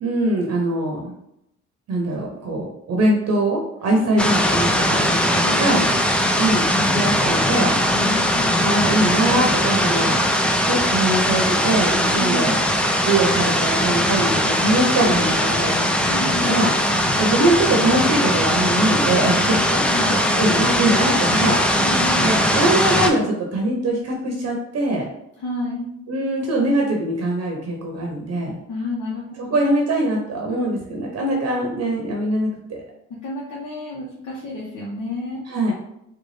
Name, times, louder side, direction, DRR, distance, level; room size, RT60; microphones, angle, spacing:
voice 1, 0.0-1.1 1.9-5.8 6.4-7.8 8.6-10.1 10.6-12.6 13.0-16.7 17.2-25.1 26.1-28.6 29.4-32.8 35.5-35.7, right 1 dB, 55° right, 0 dB, 0.7 m, -22 dB
sound 1, 4.2-23.1, equal, 5° left, 0.3 m, -20 dB
voice 2, 4.9-6.0 8.0-8.9 12.0-12.6 15.4-16.7 19.6-20.2 21.1-21.3 21.8-22.3 25.4-25.9 28.7-29.5 33.2-35.4, left 2 dB, 70° left, -5 dB, 0.9 m, -31 dB
3.9 x 2.3 x 3.2 m, 0.80 s
cardioid pair, 90°, 30 cm